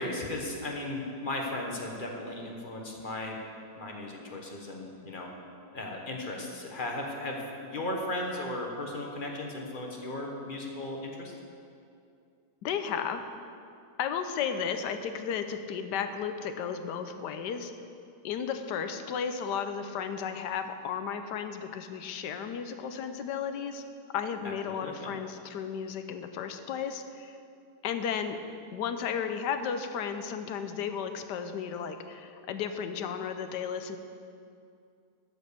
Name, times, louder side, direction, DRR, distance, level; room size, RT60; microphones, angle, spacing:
voice 1, 0.0-3.4 3.8-5.3 5.7-11.3 24.4-25.1, left 1 dB, 35° left, 0 dB, 1.1 m, -36 dB
voice 2, 12.6-13.2 14.0-17.7 18.2-23.8 24.1-27.4 27.8-28.4 28.7-34.0, left 7 dB, 80° left, 8 dB, 1.3 m, -34 dB
12.5 x 5.3 x 6.7 m, 2.5 s
omnidirectional pair, 1.8 m